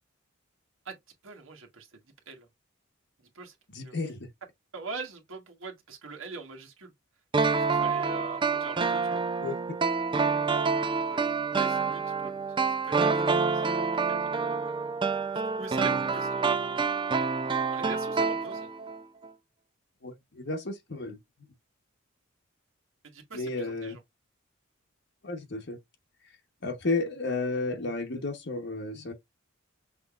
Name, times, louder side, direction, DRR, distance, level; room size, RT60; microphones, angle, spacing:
voice 1, 1.2-2.0 2.3-2.5 3.2-4.0 4.7-6.9 7.4-9.2 11.1-11.3 11.5-14.3 15.6-16.9 17.3-18.7 23.1-24.0, right 4 dB, 70° right, 1.5 m, -44 dB
voice 2, 3.7-4.3 9.4-9.8 20.0-21.2 23.3-24.0 25.2-25.8 26.2-26.4 26.6-29.1, left 3 dB, 55° left, 1.0 m, -33 dB
sound 1, 7.3-19.0 19.2-19.3, right 4 dB, 25° right, 0.4 m, -27 dB
6.0 x 3.4 x 2.4 m
head